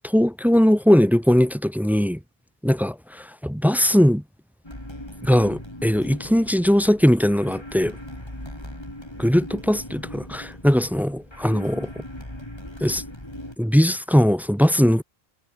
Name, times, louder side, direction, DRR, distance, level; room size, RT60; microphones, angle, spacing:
voice 1, 0.0-2.2 2.6-4.2 5.2-7.9 9.2-11.9 12.8-13.0 13.6-15.0, equal, ahead, 0.6 m, -20 dB
sound 1, 4.6-13.6, left 1 dB, 25° left, 5.7 m, -39 dB
omnidirectional pair, 1.1 m